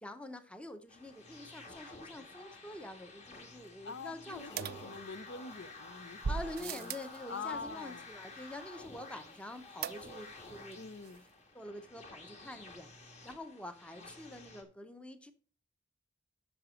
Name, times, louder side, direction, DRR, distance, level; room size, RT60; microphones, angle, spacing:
voice 1, 0.0-5.0 6.3-10.8 11.5-15.3, left 1 dB, 5° left, 0.7 m, -47 dB
sound 1, 0.9-14.6, left 3 dB, 35° left, 1.6 m, -52 dB
voice 2, 3.8-6.9 7.3-8.1 10.7-11.2, left 4 dB, 60° left, 0.6 m, -45 dB
sound 2, 4.6-5.5 6.2-7.2 9.8-10.4 10.7-10.8 11.1-11.2, right 6 dB, 50° right, 0.4 m, -39 dB
7.9 x 6.1 x 6.2 m
head